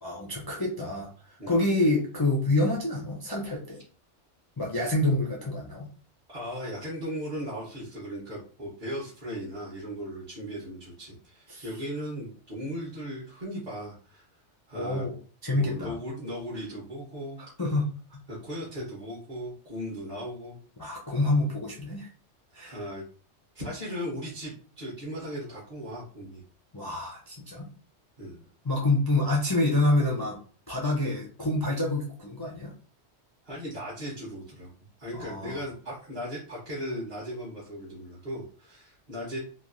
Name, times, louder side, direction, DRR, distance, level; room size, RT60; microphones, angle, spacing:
voice 1, 0.0-3.8 4.6-5.9 11.5-11.6 14.7-15.2 15.4-16.0 17.4-18.2 20.8-22.1 22.5-22.8 26.7-27.7 28.6-30.4 30.7-32.7 35.1-35.6, left 2 dB, 35° left, -3 dB, 0.3 m, -27 dB
voice 2, 6.3-14.2 14.7-15.0 15.5-17.4 18.3-20.6 22.6-23.0 23.5-26.4 26.9-27.0 28.2-28.4 33.4-34.7 35.0-39.4, equal, 40° right, -6 dB, 0.9 m, -37 dB
3.0 x 2.3 x 2.5 m, 0.41 s
omnidirectional pair, 1.2 m